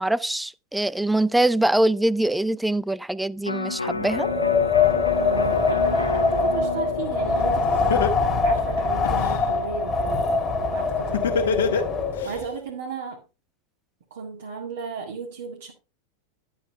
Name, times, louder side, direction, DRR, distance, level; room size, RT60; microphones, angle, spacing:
voice 1, 0.0-4.3, right 1 dB, 5° right, 0.4 m, -23 dB
Electric guitar, 3.4-9.7 10.1-10.2, left 3 dB, 80° left, 0.7 m, -32 dB
Wind, 4.0-12.4, left 4 dB, 20° left, 2.2 m, -23 dB
voice 2, 5.2-8.0 8.4-10.3 10.7-12.0 12.2-13.2 14.1-15.7, right 5 dB, 60° right, 1.8 m, -35 dB
Laughter, 7.4-7.5 7.9-9.4 11.1-12.3, left 6 dB, 60° left, 1.5 m, -23 dB
11.0 x 8.6 x 3.3 m
figure-of-eight pair, 90°, 0 cm